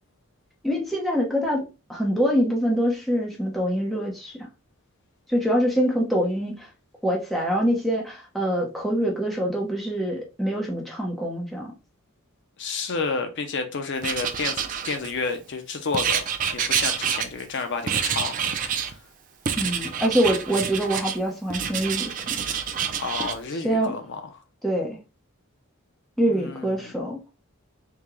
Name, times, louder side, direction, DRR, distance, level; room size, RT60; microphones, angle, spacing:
voice 1, 0.6-4.3 5.3-6.7 7.0-11.7 19.6-22.1 23.6-23.9 24.6-25.0 26.2-27.2, equal, ahead, 0.7 m, -24 dB
voice 2, 12.6-16.3 16.5-18.4 18.7-19.0 23.0-24.2 26.3-26.9, left 4 dB, 55° left, 0.5 m, -30 dB
Writing, 14.0-15.3 15.9-17.6 17.9-18.9 19.5-21.2 21.5-23.4, right 7 dB, 35° right, 0.3 m, -27 dB
3.6 x 2.1 x 3.0 m
head